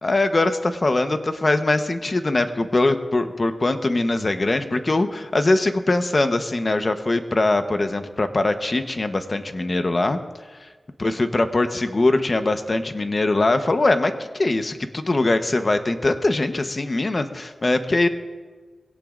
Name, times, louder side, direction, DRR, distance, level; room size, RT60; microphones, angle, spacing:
voice 1, 0.0-10.2 10.6-10.7 11.0-18.1, left 2 dB, 40° left, 8 dB, 1.0 m, -22 dB
22.5 x 17.5 x 2.6 m, 1.4 s
wide cardioid pair, 70°, 0 cm